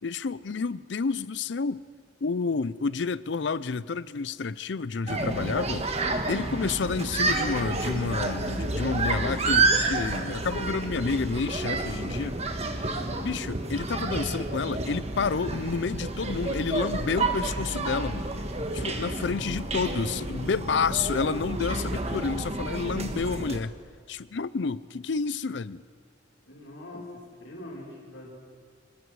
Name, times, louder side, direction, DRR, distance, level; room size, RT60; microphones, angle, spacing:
voice 1, 0.0-1.8 2.2-5.9 6.3-12.4 13.2-18.3 18.7-23.7 24.1-25.8 26.9-27.0, left 4 dB, 60° left, 0.5 m, -30 dB
sound 1, 5.1-23.6, right 2 dB, 35° right, 1.5 m, -30 dB
voice 2, 12.9-13.3 19.1-19.9 26.5-27.0 27.3-28.3, left 1 dB, 85° left, 5.6 m, -44 dB
26.5 x 20.5 x 4.8 m
head